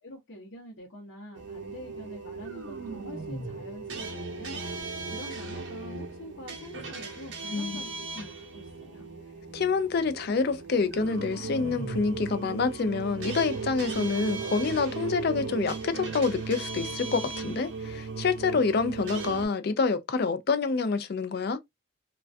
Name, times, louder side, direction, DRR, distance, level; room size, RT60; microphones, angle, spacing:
voice 1, 0.0-4.6 5.1-7.9 8.2-9.1, equal, 70° left, 0.8 m, -46 dB
sound 1, 1.3-19.5, right 4 dB, 65° right, 0.7 m, -37 dB
voice 2, 7.5-7.8 8.2-8.3 9.5-21.6, left 4 dB, 50° left, 0.4 m, -27 dB
2.3 x 2.2 x 2.4 m
head